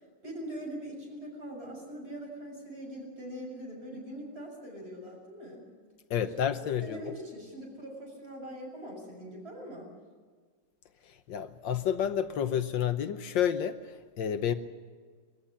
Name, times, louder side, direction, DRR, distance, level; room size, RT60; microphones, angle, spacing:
voice 1, 0.2-5.6 6.3-6.5 6.8-9.9, equal, 30° right, -1 dB, 7.2 m, -42 dB
voice 2, 6.1-7.0 11.3-14.5, left 9 dB, 75° left, 9 dB, 1.6 m, -30 dB
22.5 x 14.5 x 9.9 m, 1.5 s
omnidirectional pair, 2.0 m